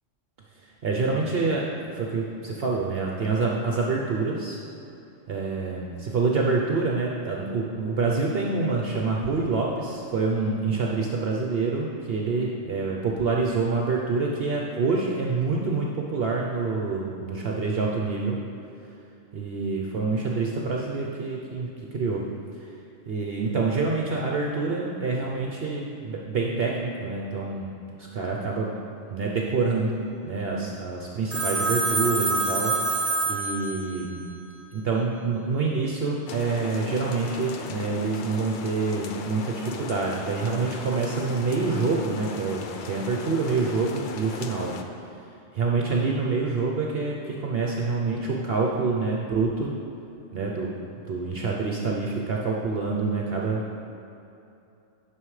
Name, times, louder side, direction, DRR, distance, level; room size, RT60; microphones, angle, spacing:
voice 1, 0.6-4.6 5.3-18.4 19.3-22.2 22.6-22.7 23.1-27.7 28.0-28.7 29.1-32.7 33.3-34.3 34.7-44.7 45.5-49.7 50.3-50.7 51.1-53.8, right 4 dB, 55° right, -1 dB, 0.8 m, -27 dB
Telephone, 31.3-34.1, right 2 dB, 20° right, 0.3 m, -26 dB
sound 1, 36.3-44.8, left 5 dB, 65° left, 0.5 m, -38 dB
11.0 x 6.2 x 3.2 m, 2.7 s
omnidirectional pair, 1.3 m